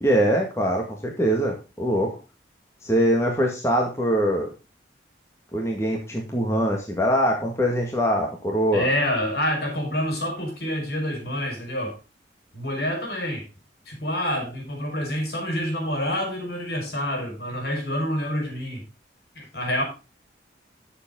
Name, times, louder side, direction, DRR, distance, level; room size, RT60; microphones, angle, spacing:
voice 1, 0.0-2.1 2.8-4.5 5.5-8.9, equal, 15° left, 0 dB, 1.9 m, -23 dB
voice 2, 8.7-12.0 12.5-13.4 13.9-18.8 19.4-19.8, equal, 60° left, 1 dB, 5.4 m, -27 dB
12.5 x 7.2 x 3.7 m, 0.29 s
head